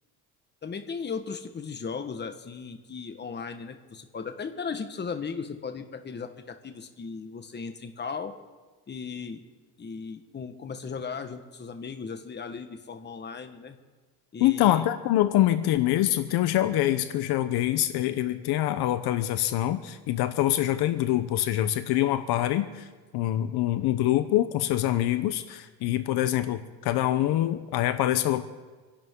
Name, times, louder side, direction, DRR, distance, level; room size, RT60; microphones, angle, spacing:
voice 1, 0.6-8.3 8.9-9.4 9.8-13.8 14.3-14.8, left 5 dB, 25° left, 6 dB, 1.4 m, -36 dB
voice 2, 14.4-22.9 23.1-28.4, left 13 dB, 70° left, 10 dB, 1.0 m, -25 dB
27.5 x 11.5 x 3.8 m, 1.3 s
cardioid pair, 115°, 40 cm